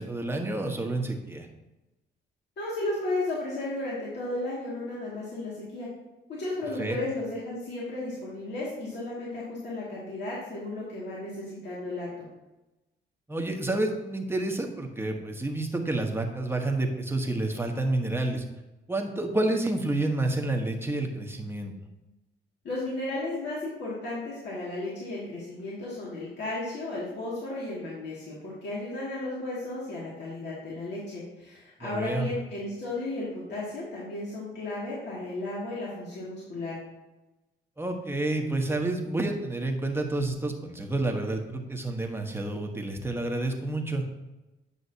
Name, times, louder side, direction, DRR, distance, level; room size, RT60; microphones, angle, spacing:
voice 1, 0.0-1.5 6.8-7.0 13.3-18.4 18.9-21.7 31.8-32.3 37.8-44.0, right 2 dB, 10° right, 2 dB, 1.2 m, -29 dB
voice 2, 2.6-5.9 6.3-12.3 22.6-36.8, left 2 dB, 60° left, -7 dB, 2.2 m, -34 dB
9.7 x 5.7 x 2.8 m, 1.0 s
cardioid pair, 90°, 20 cm